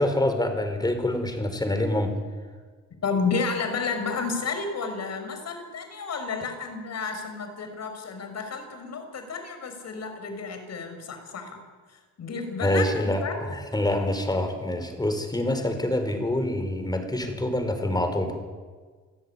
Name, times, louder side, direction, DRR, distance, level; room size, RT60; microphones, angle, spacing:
voice 1, 0.0-2.1 12.6-13.2 13.5-18.4, left 1 dB, 15° left, 7 dB, 4.8 m, -26 dB
voice 2, 3.0-11.6 11.9-13.5, left 4 dB, 60° left, 7 dB, 5.8 m, -31 dB
28.5 x 16.0 x 10.0 m, 1.5 s
cardioid pair, 90°, 30 cm